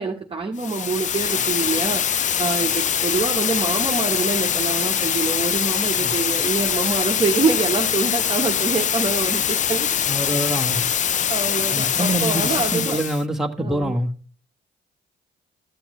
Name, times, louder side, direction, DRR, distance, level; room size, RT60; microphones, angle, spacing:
voice 1, 0.0-9.9 10.2-10.5 11.3-13.0 13.6-14.0, right 4 dB, 25° right, 1.1 m, -25 dB
sound 1, 0.6-13.2, left 9 dB, 40° left, 0.4 m, -23 dB
voice 2, 10.1-10.8 11.7-14.1, right 1 dB, ahead, 1.2 m, -25 dB
13.0 x 7.0 x 3.1 m
cardioid pair, 90°, 20 cm